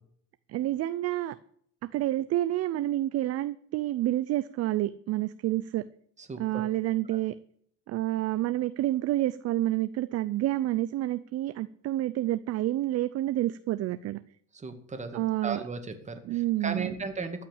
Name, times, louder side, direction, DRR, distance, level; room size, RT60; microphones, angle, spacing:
voice 1, 0.5-1.3 1.9-5.9 6.4-7.3 7.9-14.2 15.1-15.6 16.3-16.9, right 14 dB, 45° right, 14 dB, 0.5 m, -29 dB
voice 2, 6.2-6.6 14.5-17.5, right 4 dB, 20° right, 7 dB, 1.9 m, -36 dB
13.5 x 5.8 x 8.8 m, 0.62 s
cardioid pair, 125°, 34 cm